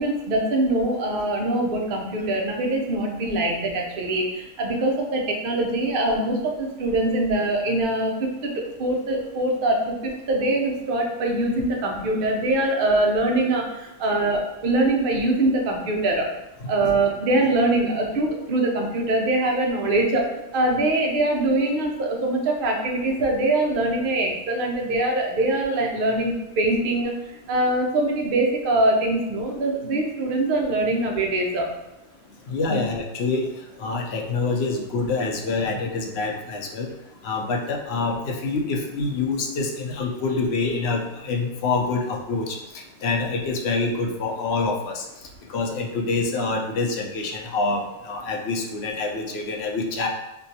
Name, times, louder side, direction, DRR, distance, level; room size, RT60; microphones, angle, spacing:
voice 1, 0.0-16.3 16.7-20.3 20.5-27.2 27.5-31.7 32.7-32.8, right 2 dB, 55° right, 1 dB, 0.7 m, -23 dB
voice 2, 32.5-33.5 33.8-36.9 37.2-42.6 43.0-45.0 45.5-50.1, left 3 dB, 65° left, 1 dB, 0.7 m, -26 dB
4.4 x 2.3 x 2.7 m, 0.94 s
omnidirectional pair, 1.3 m